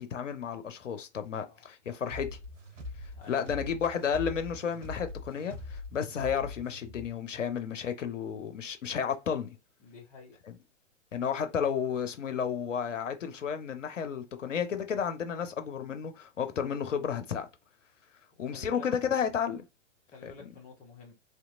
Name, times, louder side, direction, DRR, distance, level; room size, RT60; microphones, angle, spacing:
voice 1, 0.0-2.4 3.3-9.5 11.1-17.5 18.4-19.6 20.2-20.3, left 7 dB, 80° left, 0.6 m, -32 dB
sound 1, 2.1-7.1, left 2 dB, 85° right, 0.7 m, -42 dB
voice 2, 9.8-10.4 18.3-18.9 20.1-21.1, left 4 dB, 20° left, 1.0 m, -50 dB
2.8 x 2.3 x 2.4 m
figure-of-eight pair, 110°, 37 cm